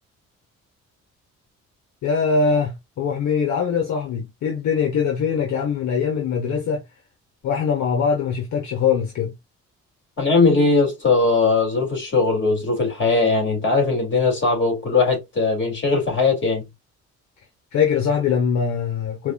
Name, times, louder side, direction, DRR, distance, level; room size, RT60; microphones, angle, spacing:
voice 1, 2.0-6.8 7.4-9.3 17.7-19.3, left 6 dB, 70° left, 1.1 m, -22 dB
voice 2, 10.2-16.6, left 3 dB, 40° left, 2.5 m, -19 dB
4.6 x 2.4 x 2.4 m
cardioid pair, 90°, 30 cm